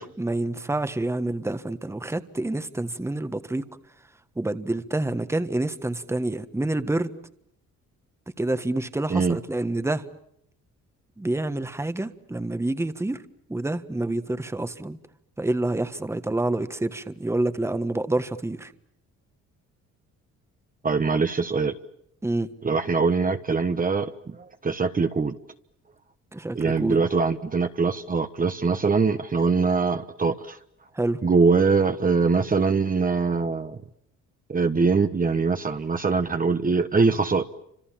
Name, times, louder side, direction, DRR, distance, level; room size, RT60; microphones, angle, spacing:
voice 1, 0.0-3.7 4.3-7.1 8.4-10.0 11.2-13.2 13.5-15.0 15.4-18.7 22.2-22.5 26.3-27.0 30.9-31.2, right 2 dB, 10° right, 11 dB, 1.4 m, -27 dB
voice 2, 20.8-21.7 22.6-25.4 26.5-30.6 31.2-33.8 34.5-37.4, right 4 dB, 30° right, 7 dB, 1.2 m, -23 dB
29.5 x 26.5 x 7.5 m, 0.74 s
cardioid pair, 90°, 30 cm